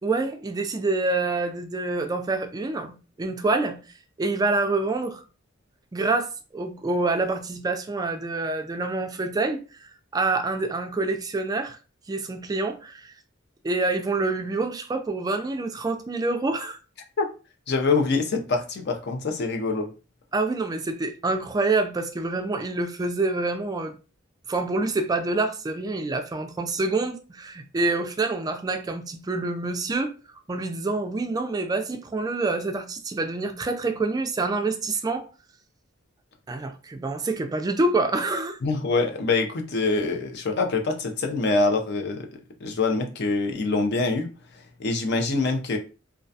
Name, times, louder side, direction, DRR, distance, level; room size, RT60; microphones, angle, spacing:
voice 1, 0.0-3.8 4.2-5.2 5.9-11.8 12.1-13.1 13.6-16.8 20.3-23.9 24.5-30.1 30.5-35.3 36.5-38.6, right 3 dB, 20° right, 0.3 m, -27 dB
voice 2, 17.7-19.9 38.6-42.3 42.6-44.3 44.8-45.8, left 3 dB, 60° left, 0.5 m, -25 dB
2.3 x 2.2 x 2.6 m
head